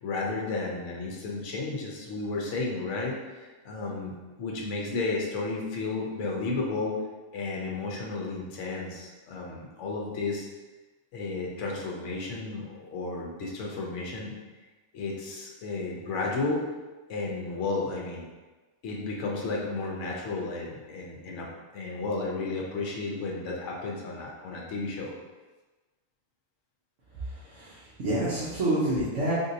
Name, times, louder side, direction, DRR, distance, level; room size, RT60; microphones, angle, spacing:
voice 1, 0.0-7.0 7.3-10.5 11.1-14.3 14.9-16.6 17.1-18.3 18.8-21.5 21.7-25.1, left 3 dB, 70° left, -2 dB, 1.0 m, -33 dB
voice 2, 27.3-29.3, right 1 dB, 70° right, -10 dB, 1.3 m, -28 dB
3.6 x 2.7 x 2.6 m, 1.2 s
omnidirectional pair, 1.4 m